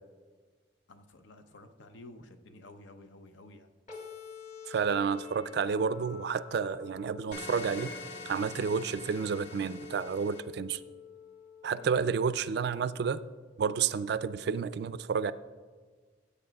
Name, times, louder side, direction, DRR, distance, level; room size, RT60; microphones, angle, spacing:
voice 1, 0.9-3.7 11.7-11.9, left 2 dB, 75° left, 8 dB, 0.7 m, -52 dB
sound 1, 3.9-11.9, left 7 dB, 40° left, 1.6 m, -49 dB
voice 2, 4.7-8.0 8.2-10.8 11.6-13.2 13.6-15.3, right 6 dB, 55° right, 15 dB, 0.3 m, -30 dB
sound 2, 7.3-10.4, left 3 dB, 60° left, 1.2 m, -45 dB
16.0 x 8.2 x 2.3 m, 1.4 s
head